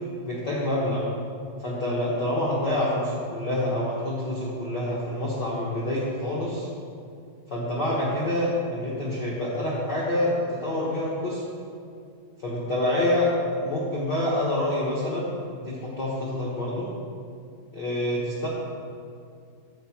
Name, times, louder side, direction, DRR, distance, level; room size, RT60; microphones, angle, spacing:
voice 1, 0.2-1.0 1.6-6.7 7.5-11.4 12.4-13.3 13.6-16.9 17.7-18.5, left 1 dB, 65° left, -6 dB, 1.0 m, -27 dB
9.2 x 4.4 x 7.1 m, 2.3 s
omnidirectional pair, 3.7 m